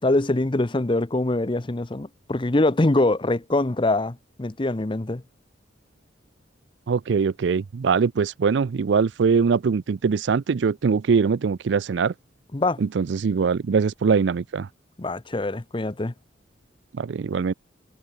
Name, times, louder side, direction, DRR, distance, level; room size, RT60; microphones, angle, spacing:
voice 1, 0.0-5.2 12.5-12.8 15.0-16.1, left 2 dB, 25° left, 0.7 m, -23 dB
voice 2, 6.9-12.1 12.8-14.7 16.9-17.5, right 5 dB, 70° right, 0.4 m, -22 dB
head